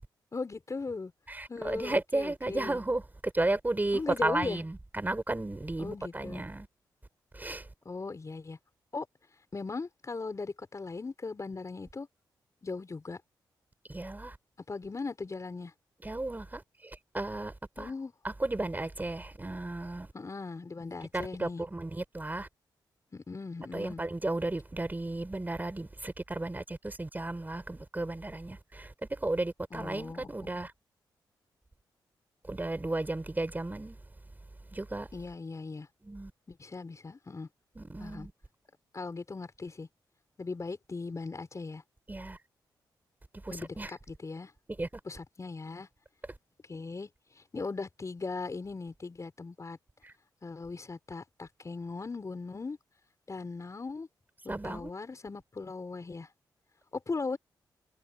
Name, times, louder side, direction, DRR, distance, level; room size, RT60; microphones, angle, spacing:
voice 1, 0.3-1.1 1.5-2.8 3.9-4.6 5.8-6.4 7.8-8.6 8.9-9.1 9.5-12.1 12.6-13.2 14.7-15.7 17.8-18.1 20.1-21.6 23.1-24.0 29.7-30.5 35.1-35.9 36.5-37.5 38.0-38.3 38.9-39.9 40.4-41.8 43.5-44.5 45.0-45.9 46.7-47.1 47.5-49.8 50.4-52.8 53.3-54.1 54.4-56.3 57.1-57.4, left 4 dB, 40° left, 5.1 m, -38 dB
voice 2, 1.3-3.0 3.3-6.7 7.3-7.6 13.9-14.4 16.0-16.6 17.1-17.9 18.2-20.1 21.1-22.5 23.7-30.7 32.5-34.0 34.7-35.1 36.0-36.3 37.8-38.3 42.1-42.4 43.5-43.9 44.8-44.9 54.5-54.9, right 2 dB, 20° right, 5.5 m, -34 dB
cardioid pair, 60°, 8 cm